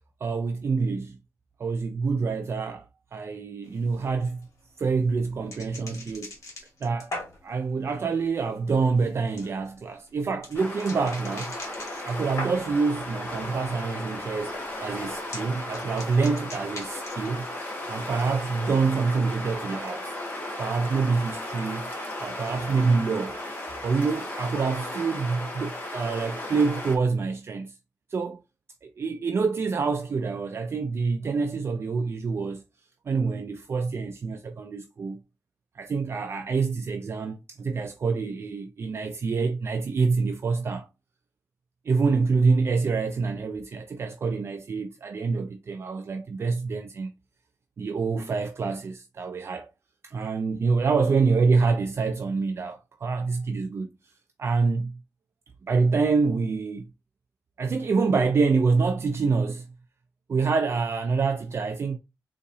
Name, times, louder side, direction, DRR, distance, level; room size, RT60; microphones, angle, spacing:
voice 1, 0.2-1.2 1.6-2.9 3.1-4.5 4.8-6.3 6.8-11.5 12.0-14.5 14.8-17.5 17.9-20.1 20.6-21.9 22.2-23.4 23.8-27.8 28.1-28.4 28.8-32.6 33.1-35.2 35.7-40.9 41.9-47.1 47.8-49.7 50.0-53.9 54.4-55.0 55.7-56.9 57.6-59.7 60.3-62.0, right 4 dB, 45° right, 0.3 m, -26 dB
sound 1, 3.7-12.9 13.3-13.8 14.1-17.5, left 2 dB, 60° left, 1.8 m, -42 dB
sound 2, 10.5-27.0, left 1 dB, 35° left, 1.1 m, -35 dB
3.9 x 2.8 x 2.6 m
wide cardioid pair, 140°, 6 cm